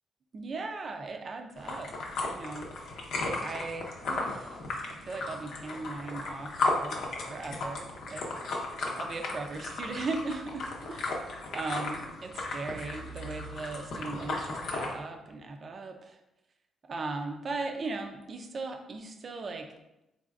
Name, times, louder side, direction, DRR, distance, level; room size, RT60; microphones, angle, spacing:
voice 1, 0.3-1.9 2.3-4.6 4.9-7.0 7.3-16.2 16.9-19.7, right 3 dB, 45° right, 5 dB, 0.5 m, -38 dB
sound 1, 1.6-14.9, left 2 dB, 75° left, 0.7 m, -35 dB
4.0 x 3.3 x 2.4 m, 0.90 s
cardioid pair, 90°, 0 cm